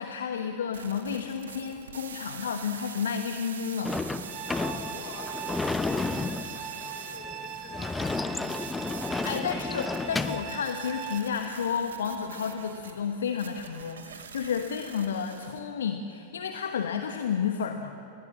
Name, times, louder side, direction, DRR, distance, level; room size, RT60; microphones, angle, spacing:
voice 1, 0.0-4.0 9.2-18.0, left 7 dB, 65° left, 6 dB, 1.2 m, -31 dB
sound 1, 0.7-15.6, right 7 dB, 65° right, 1.8 m, -44 dB
Sliding door / Slam, 3.8-10.5, left 3 dB, 10° left, 0.7 m, -32 dB
sound 2, 4.2-11.2, right 6 dB, 35° right, 2.6 m, -40 dB
voice 2, 4.5-8.6, left 6 dB, 45° left, 5 dB, 4.1 m, -47 dB
27.0 x 21.0 x 7.6 m, 2.8 s
figure-of-eight pair, 90°, 0 cm